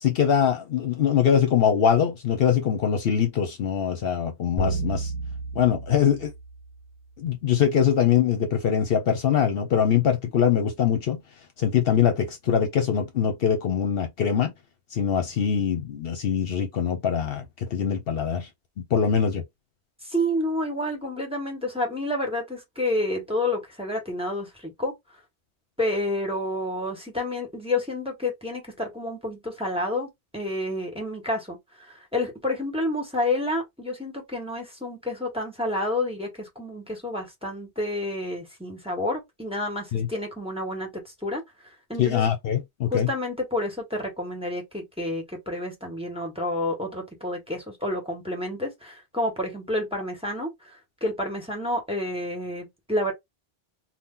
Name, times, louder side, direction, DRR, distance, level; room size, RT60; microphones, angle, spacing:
voice 1, 0.0-5.1 5.6-6.3 7.2-11.2 11.6-14.5 14.9-18.5 18.9-19.4 39.9-40.1 42.0-43.1, left 8 dB, 65° left, 0.9 m, -23 dB
sound 1, 4.6-7.0, right 2 dB, 25° left, 0.8 m, -32 dB
voice 2, 20.0-24.9 25.8-30.1 30.3-31.6 31.9-42.2 42.9-53.1, left 1 dB, 5° right, 1.2 m, -29 dB
2.8 x 2.2 x 3.7 m
omnidirectional pair, 1.1 m